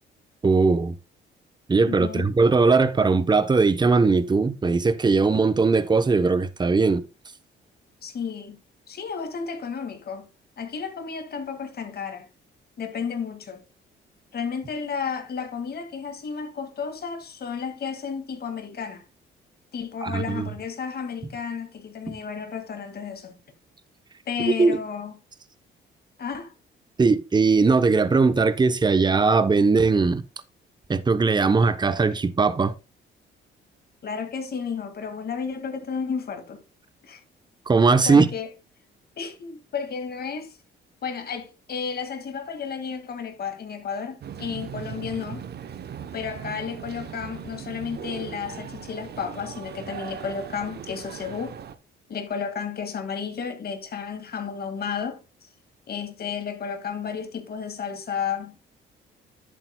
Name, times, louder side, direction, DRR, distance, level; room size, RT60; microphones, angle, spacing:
voice 1, 0.4-1.0 1.7-7.0 20.0-20.5 22.1-22.2 24.6-24.8 27.0-30.2 30.9-32.7 37.7-38.3, right 4 dB, 20° right, 0.8 m, -20 dB
voice 2, 1.9-2.3 8.0-8.6 8.9-10.3 10.6-12.3 12.8-13.6 14.3-19.0 19.7-23.4 24.3-25.1 26.2-26.5 34.0-36.6 37.0-37.2 38.1-38.5 39.2-40.6 41.0-45.5 46.1-51.6 52.1-55.5 55.9-58.6, left 6 dB, 50° left, 2.1 m, -32 dB
sound 1, 44.2-51.8, right 8 dB, 55° right, 0.9 m, -38 dB
11.0 x 8.8 x 2.3 m
cardioid pair, 90°, 20 cm